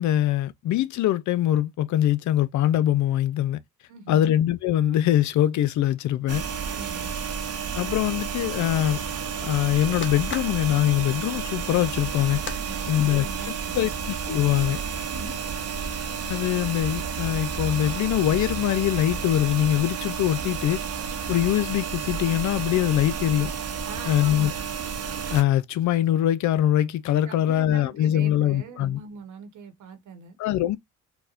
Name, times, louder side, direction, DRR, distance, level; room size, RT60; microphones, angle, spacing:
voice 1, 0.0-3.6 4.1-6.4 7.8-9.0 9.4-12.4 12.9-13.3 13.7-14.8 16.3-20.8 21.3-23.5 24.1-24.5 25.3-29.0 30.4-30.8, left 12 dB, 70° left, 0.5 m, -23 dB
voice 2, 3.9-4.4 6.7-7.3 12.7-14.0 15.1-15.4 23.8-24.6 27.2-30.4, right 5 dB, 75° right, 1.1 m, -42 dB
sound 1, 6.3-25.4, right 6 dB, 55° right, 0.8 m, -31 dB
sound 2, 10.0-12.6, left 5 dB, 40° left, 0.8 m, -43 dB
4.5 x 2.1 x 2.4 m
cardioid pair, 90°, 30 cm